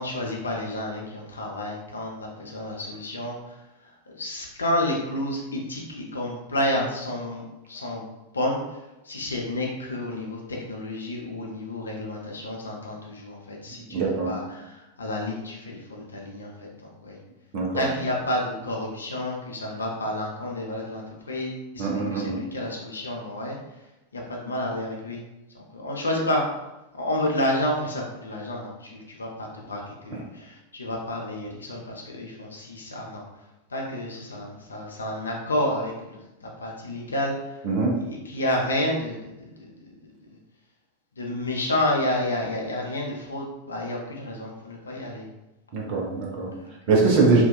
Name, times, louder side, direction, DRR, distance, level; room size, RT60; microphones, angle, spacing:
voice 1, 0.0-3.6 4.1-8.1 8.3-8.8 9.0-17.2 17.7-23.6 24.1-25.2 25.5-26.5 26.9-33.2 33.7-37.5 37.9-40.4 41.2-45.3 46.5-46.7, left 1 dB, 75° left, -1 dB, 0.4 m, -30 dB
voice 2, 13.9-14.3 17.5-17.9 21.8-22.4 37.6-38.0 45.7-46.5 46.9-47.4, right 3 dB, 45° right, -2 dB, 0.5 m, -22 dB
2.6 x 2.2 x 2.2 m, 0.98 s
figure-of-eight pair, 90°, 0 cm